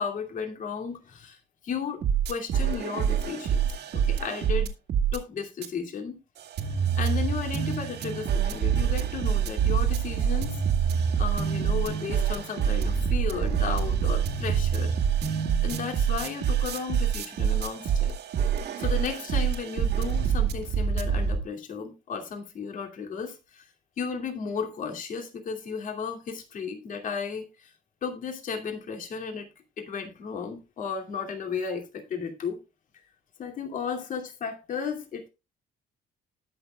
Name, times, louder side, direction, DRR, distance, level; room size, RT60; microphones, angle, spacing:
voice 1, 0.0-1.4 1.6-2.0 2.3-4.7 5.1-6.2 6.6-14.9 15.6-18.1 18.8-23.6 24.0-27.7 28.0-29.5 29.8-32.6 33.4-35.3, left 6 dB, 50° left, 3 dB, 2.6 m, -34 dB
sound 1, 2.0-5.2 5.6-5.7 6.4-21.4, right 7 dB, 75° right, 2.0 m, -26 dB
19.5 x 6.7 x 2.3 m, 0.27 s
cardioid pair, 155°, 17 cm